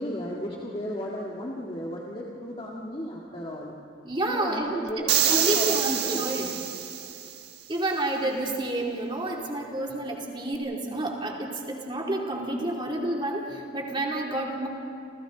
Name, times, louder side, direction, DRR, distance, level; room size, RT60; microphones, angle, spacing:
voice 1, 0.0-3.7 4.3-6.3, equal, 30° left, -4 dB, 1.9 m, -34 dB
voice 2, 4.0-6.5 7.7-14.7, right 1 dB, 25° right, -1 dB, 3.0 m, -30 dB
sound 1, 5.1-7.4, right 10 dB, 60° right, 1.4 m, -26 dB
29.5 x 28.0 x 4.0 m, 2.5 s
head